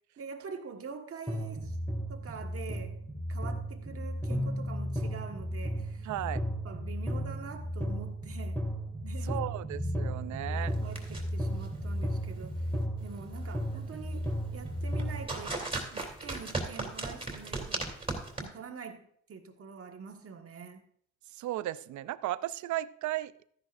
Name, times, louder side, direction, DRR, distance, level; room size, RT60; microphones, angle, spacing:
voice 1, 0.2-1.8 2.1-3.0 3.3-6.1 6.6-8.7 9.0-9.7 10.4-12.7 13.0-15.6 15.9-17.9 18.4-20.9, right 5 dB, 50° right, 1.5 m, -45 dB
sound 1, 1.3-15.3, equal, 5° left, 2.2 m, -34 dB
voice 2, 6.0-6.4 9.3-10.7 21.3-23.3, right 14 dB, 70° right, 0.5 m, -35 dB
sound 2, 10.7-18.4, right 2 dB, 20° right, 2.8 m, -39 dB
13.5 x 10.5 x 2.6 m
cardioid pair, 90°, 30 cm